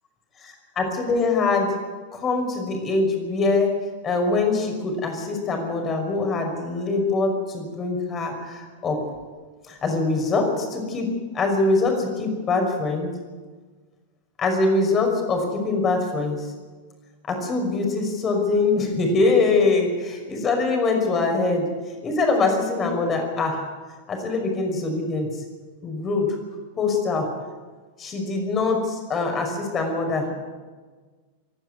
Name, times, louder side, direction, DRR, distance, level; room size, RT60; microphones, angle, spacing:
voice 1, 0.4-1.7 2.1-3.7 4.0-9.0 9.6-11.1 11.3-13.1 14.4-16.5 17.3-23.6 24.1-25.4 25.8-26.3 26.8-27.3 28.0-30.4, left 3 dB, 25° left, 3 dB, 5.8 m, -23 dB
26.5 x 11.5 x 9.7 m, 1.4 s
figure-of-eight pair, 90°, 0 cm